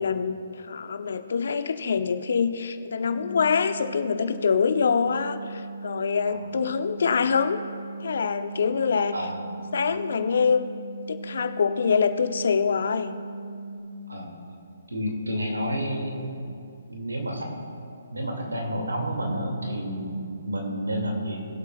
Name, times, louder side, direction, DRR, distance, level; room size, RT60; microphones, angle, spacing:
voice 1, 0.0-7.6 8.0-9.1 9.7-10.8 11.1-13.1, left 6 dB, 60° left, 9 dB, 0.8 m, -25 dB
sound 1, 3.1-13.8, right 3 dB, 30° right, 1.5 m, -39 dB
voice 2, 14.9-16.3 16.9-17.5 18.1-21.5, equal, 90° right, 0 dB, 2.5 m, -30 dB
22.0 x 8.1 x 2.5 m, 2.5 s
figure-of-eight pair, 140°, 0 cm